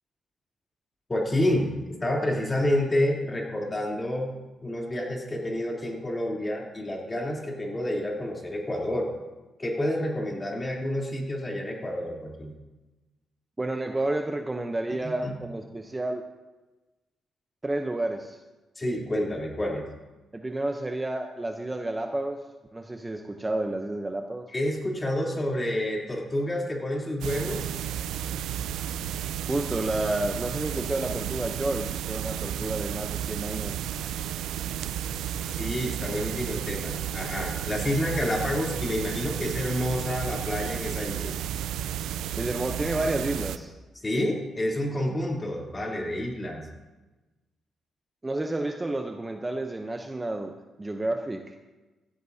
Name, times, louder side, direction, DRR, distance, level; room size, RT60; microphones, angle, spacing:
voice 1, 1.1-1.7 2.0-4.3 4.6-9.1 9.6-12.5 15.0-15.3 18.8-19.8 24.5-27.7 35.6-41.4 44.0-46.6, left 1 dB, 20° left, -2 dB, 3.3 m, -29 dB
voice 2, 13.6-16.2 17.6-18.4 19.2-19.3 20.3-24.5 29.5-33.8 42.3-43.7 48.2-51.6, right 2 dB, 15° right, 4 dB, 0.8 m, -30 dB
sound 1, 27.2-43.6, right 10 dB, 90° right, 0.5 m, -32 dB
16.0 x 14.0 x 2.8 m, 1.1 s
cardioid pair, 105°, 0 cm